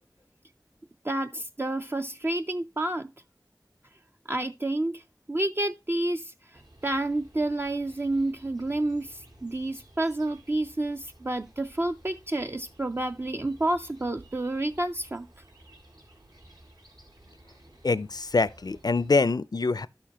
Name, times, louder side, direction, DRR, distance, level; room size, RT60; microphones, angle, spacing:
voice 1, 1.0-3.1 4.3-5.0 5.3-6.3 6.8-15.3, right 1 dB, 35° right, 0.5 m, -29 dB
sound 1, 6.5-19.2, right 1 dB, 70° right, 2.4 m, -55 dB
voice 2, 17.8-19.9, left 3 dB, 70° left, 0.5 m, -25 dB
12.0 x 6.8 x 2.9 m
wide cardioid pair, 50°, 7 cm